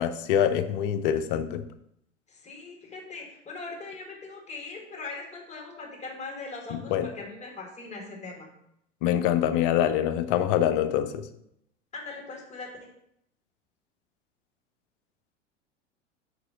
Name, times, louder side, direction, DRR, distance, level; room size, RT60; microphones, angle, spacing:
voice 1, 0.0-1.6 6.7-7.1 9.0-11.3, left 10 dB, 45° left, 10 dB, 0.6 m, -25 dB
voice 2, 2.3-8.5 11.9-12.9, left 3 dB, 20° left, 0 dB, 1.7 m, -40 dB
4.8 x 4.6 x 5.1 m, 0.75 s
figure-of-eight pair, 85°, 37 cm